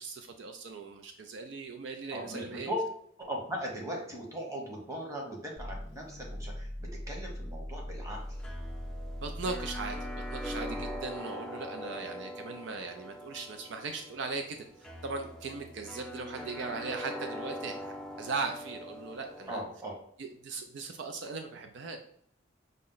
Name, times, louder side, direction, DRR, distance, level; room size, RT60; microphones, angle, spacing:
voice 1, 0.0-2.7 9.2-10.0 10.3-14.7 15.0-19.6 20.2-22.0, right 4 dB, 65° right, 5 dB, 0.4 m, -39 dB
voice 2, 2.1-2.9 3.2-8.2 10.7-10.8 19.5-20.0, equal, 15° right, -1 dB, 1.0 m, -38 dB
sound 1, 5.6-11.2, equal, 40° right, 1.2 m, -40 dB
sound 2, 8.1-19.6, equal, 5° left, 0.4 m, -42 dB
5.4 x 2.0 x 3.8 m, 0.67 s
head